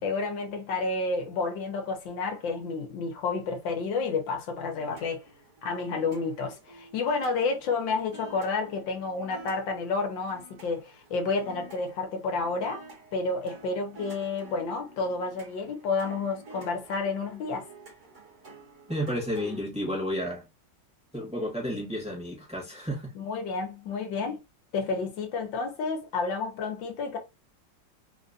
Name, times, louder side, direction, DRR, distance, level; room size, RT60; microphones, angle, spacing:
voice 1, 0.0-5.2 5.6-12.9 13.1-17.7 23.1-24.4 24.7-27.2, left 4 dB, 80° left, 1.6 m, -30 dB
sound 1, 4.7-19.6, right 2 dB, 40° right, 1.8 m, -50 dB
voice 2, 18.9-20.4 21.1-23.1, equal, 5° right, 1.3 m, -31 dB
3.9 x 2.6 x 2.6 m
omnidirectional pair, 2.0 m